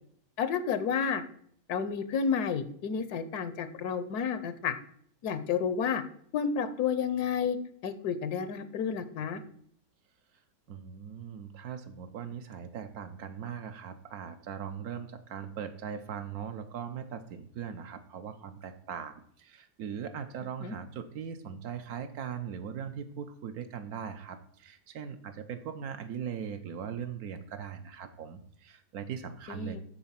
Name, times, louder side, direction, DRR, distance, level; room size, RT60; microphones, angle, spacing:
voice 1, 0.4-1.2 1.7-4.7 5.2-6.0 6.3-7.6 7.8-9.4 20.6-20.7 29.5-29.8, left 6 dB, 85° left, 11 dB, 1.3 m, -31 dB
voice 2, 10.7-29.8, right 7 dB, 75° right, 9 dB, 1.3 m, -40 dB
9.3 x 4.3 x 5.7 m, 0.63 s
omnidirectional pair, 1.7 m